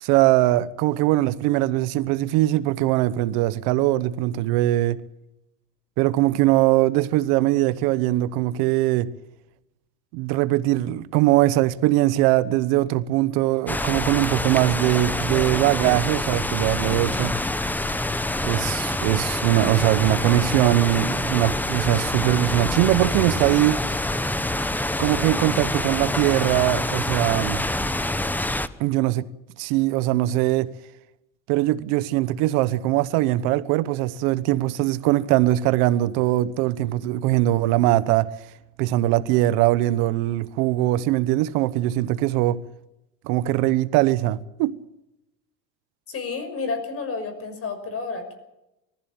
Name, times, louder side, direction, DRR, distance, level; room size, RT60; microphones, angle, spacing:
voice 1, 0.0-5.0 6.0-9.1 10.1-17.3 18.4-23.8 25.0-27.6 28.8-29.3 29.6-30.7 31.5-38.3 38.8-42.6 43.2-44.8, right 15 dB, 75° right, 1.1 m, -21 dB
sound 1, 13.7-28.7, left 1 dB, 5° left, 0.9 m, -26 dB
voice 2, 46.1-48.3, left 4 dB, 40° left, 6.1 m, -30 dB
21.5 x 15.0 x 8.9 m
cardioid pair, 125°, 37 cm